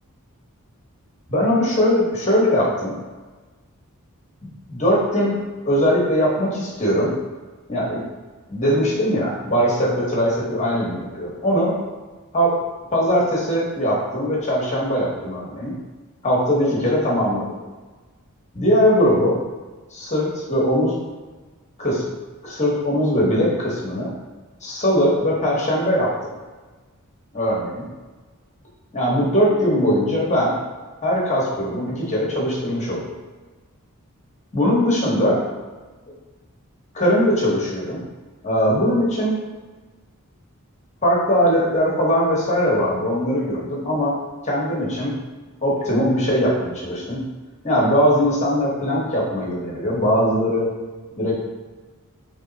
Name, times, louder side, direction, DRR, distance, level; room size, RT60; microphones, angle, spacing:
voice 1, 1.3-3.0 4.7-7.1 7.7-8.0 8.5-11.8 12.3-12.6 12.9-15.7 16.2-17.5 18.5-19.4 19.9-21.0 21.8-22.1 22.4-24.1 24.6-26.1 27.3-27.8 28.9-30.5 31.0-33.1 34.5-35.4 36.9-38.0 38.4-39.4 41.0-44.1 44.4-45.1 45.6-47.2 47.6-50.7 51.2-51.4, equal, 30° left, -4 dB, 1.3 m, -20 dB
3.6 x 3.2 x 4.0 m, 1.3 s
head